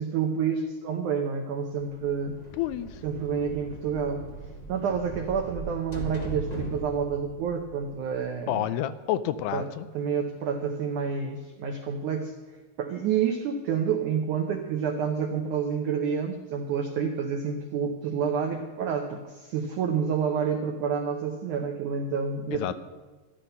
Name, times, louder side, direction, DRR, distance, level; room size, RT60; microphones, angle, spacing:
voice 1, 0.0-2.4 3.0-4.3 4.7-8.6 9.5-9.7 9.9-12.3 12.8-22.7, right 6 dB, 85° right, 4 dB, 1.7 m, -29 dB
sound 1, 1.8-8.6, right 1 dB, 35° left, 0.6 m, -40 dB
voice 2, 2.6-3.0 8.5-9.9 22.5-22.7, left 12 dB, 80° left, 13 dB, 2.6 m, -29 dB
14.0 x 13.0 x 5.6 m, 1.3 s
omnidirectional pair, 4.9 m